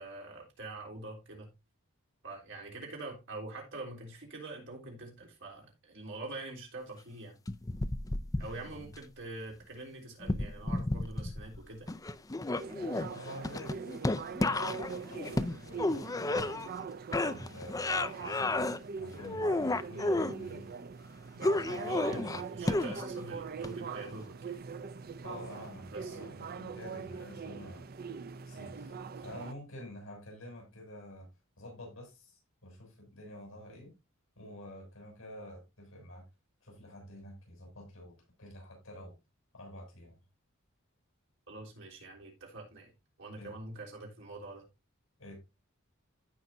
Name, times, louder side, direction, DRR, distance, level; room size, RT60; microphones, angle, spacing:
voice 1, 0.0-1.5 2.2-7.4 8.4-11.9 21.9-24.5 25.9-26.2 41.5-42.9 43.2-44.7, right 2 dB, 65° right, 3.5 m, -44 dB
sound 1, 7.5-9.0 10.2-11.6 11.9-16.8 17.1-18.8 19.2-20.3 21.4-23.2 23.6-23.7, left 2 dB, 15° left, 0.5 m, -32 dB
voice 2, 8.4-8.8 13.1-13.8 14.4-16.6 17.2-18.7 18.9-20.7 21.3-22.3 25.2-27.8 28.4-31.3 31.6-33.9 34.4-36.2 36.6-39.1 39.5-40.1 43.3-43.5 45.2-45.4, left 1 dB, 70° left, 6.7 m, -48 dB
sound 2, 12.6-29.5, right 5 dB, 45° right, 0.5 m, -42 dB
15.5 x 5.6 x 2.7 m
head